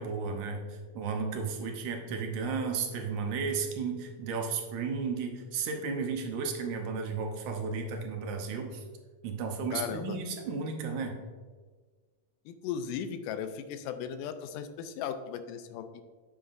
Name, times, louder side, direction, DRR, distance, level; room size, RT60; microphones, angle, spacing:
voice 1, 0.0-8.8 9.2-11.2, right 5 dB, 70° right, 3 dB, 2.2 m, -34 dB
voice 2, 9.7-10.2 12.5-16.0, left 8 dB, 85° left, 9 dB, 2.1 m, -37 dB
9.1 x 6.8 x 2.6 m, 1.5 s
omnidirectional pair, 3.8 m